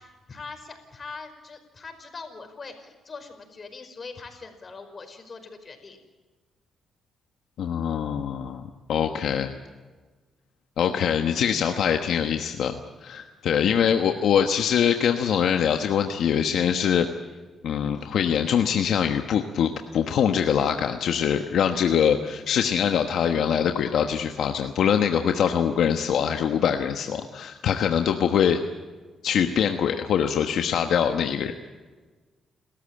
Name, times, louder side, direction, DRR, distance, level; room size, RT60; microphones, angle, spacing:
voice 1, 0.0-6.0, left 4 dB, 40° left, 7 dB, 5.1 m, -42 dB
voice 2, 7.6-8.6 8.9-9.5 10.8-17.1 17.6-28.6 29.2-31.7, left 8 dB, 75° left, 5 dB, 1.3 m, -23 dB
29.5 x 14.0 x 9.0 m, 1.4 s
cardioid pair, 80°, 0 cm